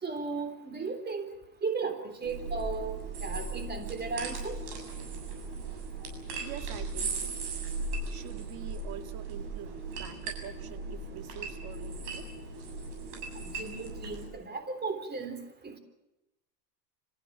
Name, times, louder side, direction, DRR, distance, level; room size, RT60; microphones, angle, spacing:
voice 1, 0.0-1.3 1.6-4.6 13.3-15.8, right 4 dB, 20° right, 8 dB, 3.6 m, -36 dB
sound 1, 2.2-14.3, right 3 dB, 65° right, 7.6 m, -37 dB
voice 2, 6.4-7.4 8.1-12.3, right 11 dB, 45° right, 9 dB, 2.2 m, -45 dB
27.5 x 15.0 x 8.7 m, 0.98 s
hypercardioid pair, 105°, 49 cm